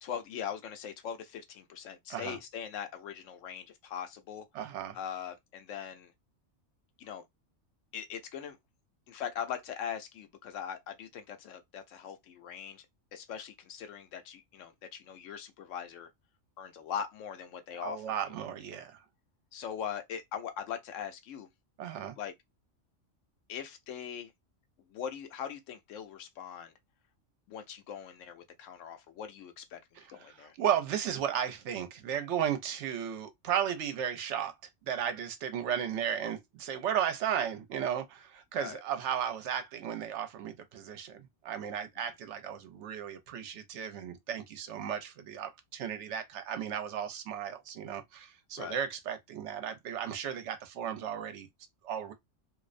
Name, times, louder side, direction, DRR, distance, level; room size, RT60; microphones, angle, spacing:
voice 1, 0.0-4.5 4.9-6.1 7.0-7.2 7.9-8.6 9.1-12.9 13.1-16.1 16.6-18.1 19.5-21.5 22.2-22.3 23.5-24.3 24.9-26.7 27.5-29.8 30.1-30.5 38.6-38.8 42.0-42.1 48.6-48.8, left 8 dB, 90° left, 1.0 m, -41 dB
voice 2, 4.5-5.0 17.8-19.0 21.8-22.2 30.2-34.5 34.8-51.5 51.8-52.1, right 9 dB, 70° right, 0.8 m, -35 dB
2.5 x 2.0 x 2.4 m
omnidirectional pair, 1.3 m